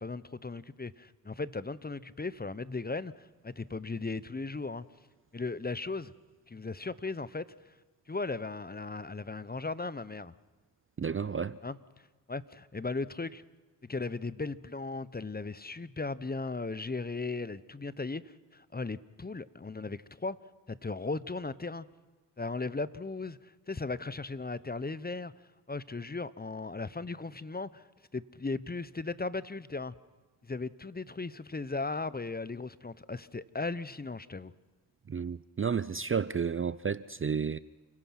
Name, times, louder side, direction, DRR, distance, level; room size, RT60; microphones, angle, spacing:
voice 1, 0.0-4.9 5.3-6.1 6.5-7.5 8.1-10.3 11.6-11.8 12.3-13.4 13.8-20.4 20.7-21.9 22.4-25.3 25.7-27.8 28.1-30.0 30.4-34.5, left 3 dB, 20° left, 0.9 m, -37 dB
voice 2, 11.0-11.6 35.1-37.6, right 6 dB, 30° right, 0.5 m, -31 dB
29.0 x 16.5 x 6.0 m
supercardioid pair, 45°, 45 cm